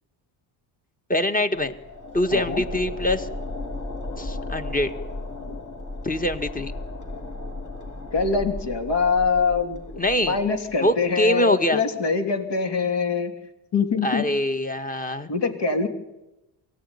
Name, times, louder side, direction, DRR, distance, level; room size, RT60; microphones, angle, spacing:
voice 1, 1.1-1.7 2.1-3.3 4.2-4.9 6.0-6.7 10.0-10.4 10.8-11.8 14.0-15.3, left 1 dB, 15° left, 8 dB, 1.7 m, -23 dB
sound 1, 1.6-10.9, left 2 dB, 40° left, 4.1 m, -35 dB
voice 2, 2.3-2.6 5.5-5.6 8.1-13.3 13.7-14.3 15.3-15.9, left 5 dB, 60° left, 6 dB, 3.2 m, -24 dB
23.5 x 16.5 x 9.9 m, 1.0 s
cardioid pair, 100°, 47 cm